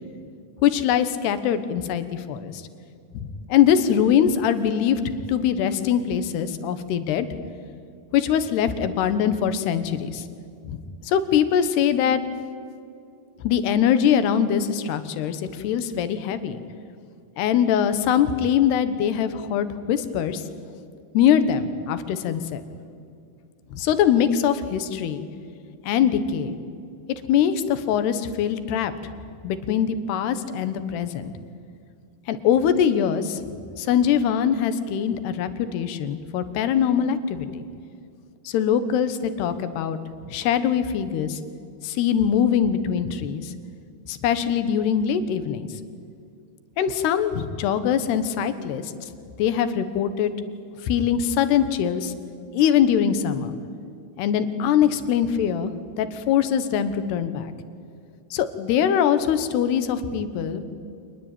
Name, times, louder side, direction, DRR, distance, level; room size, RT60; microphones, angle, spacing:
voice 1, 0.6-2.6 3.2-5.0 5.3-7.3 8.1-10.3 10.7-12.2 13.4-16.6 17.4-20.4 21.2-22.6 23.7-25.2 25.8-26.6 27.1-29.1 29.4-31.3 32.3-33.4 33.8-37.6 38.5-40.0 40.3-41.4 41.8-43.5 44.1-45.7 46.8-48.9 49.4-50.3 50.8-52.1 52.5-53.5 54.2-57.5 58.3-60.6, left 8 dB, 85° left, 11 dB, 3.4 m, -22 dB
26.0 x 20.5 x 9.0 m, 2.4 s
omnidirectional pair, 4.6 m